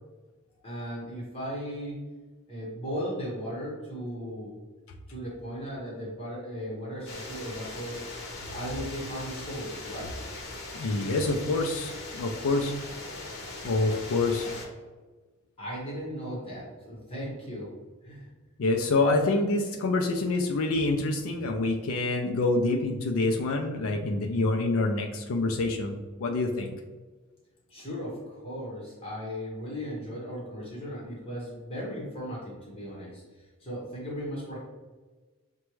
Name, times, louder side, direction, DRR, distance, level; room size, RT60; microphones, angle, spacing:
voice 1, 0.6-2.0 2.5-4.5 5.1-8.0 8.5-10.1 14.4-14.5 15.6-17.7 18.0-18.3 27.7-34.6, equal, 25° left, -5 dB, 1.1 m, -37 dB
sound 1, 7.1-14.7, left 2 dB, 55° left, 0.9 m, -40 dB
voice 2, 10.7-12.7 13.6-14.5 18.6-26.8, left 2 dB, 70° left, 3 dB, 0.4 m, -26 dB
6.0 x 2.2 x 3.0 m, 1.3 s
head